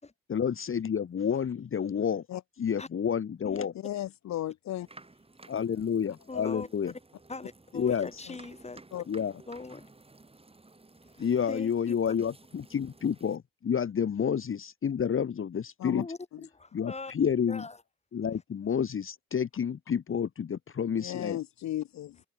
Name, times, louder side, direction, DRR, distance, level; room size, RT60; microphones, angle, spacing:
voice 1, 0.3-2.2 2.6-3.7 5.5-6.9 7.7-8.2 9.1-9.3 11.2-16.1 16.7-17.7 18.1-21.4, left 7 dB, 40° left, 1.6 m, -29 dB
voice 2, 3.7-4.9 8.9-9.0 15.8-16.0 16.3-16.4 20.9-22.2, left 13 dB, 55° left, 1.1 m, -35 dB
sound 1, 4.8-13.4, right 2 dB, 15° right, 3.9 m, -55 dB
voice 3, 6.3-6.7 7.3-8.8 9.5-9.9 11.0-12.0 16.0-17.1 17.5-17.8, left 3 dB, 20° left, 2.9 m, -41 dB
hypercardioid pair, 55°, 33 cm